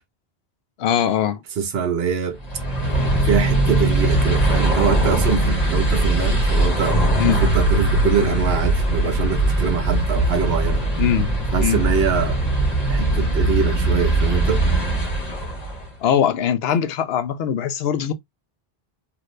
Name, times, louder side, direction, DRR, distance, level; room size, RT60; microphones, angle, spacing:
voice 1, 0.8-1.4 7.2-7.4 11.0-11.3 11.6-11.8 16.0-18.1, left 9 dB, 75° left, 0.8 m, -21 dB
voice 2, 1.6-2.4 3.2-7.0 7.4-10.8 11.5-12.4 12.9-14.7, right 6 dB, 75° right, 1.0 m, -23 dB
sound 1, 2.4-15.9, right 2 dB, 40° left, 1.2 m, -20 dB
2.7 x 2.5 x 3.1 m
omnidirectional pair, 1.0 m